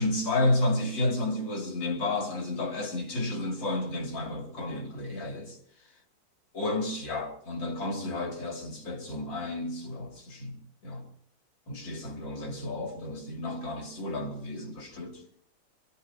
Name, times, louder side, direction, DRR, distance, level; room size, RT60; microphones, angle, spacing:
voice 1, 0.0-5.6 6.5-10.6 10.8-11.0 11.7-15.2, left 2 dB, 75° left, 3.6 m, -31 dB
25.0 x 19.0 x 2.9 m
omnidirectional pair, 2.0 m